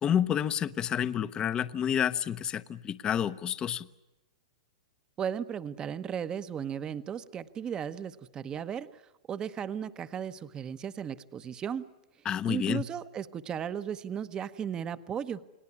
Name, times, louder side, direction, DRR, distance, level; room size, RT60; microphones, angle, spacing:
voice 1, 0.0-3.9 12.2-12.8, left 9 dB, 25° left, 14 dB, 0.9 m, -29 dB
voice 2, 5.2-9.0 9.3-11.8 12.5-15.4, right 8 dB, 20° right, 13 dB, 1.0 m, -35 dB
29.5 x 18.5 x 9.8 m, 1.0 s
hypercardioid pair, 135°, 4 cm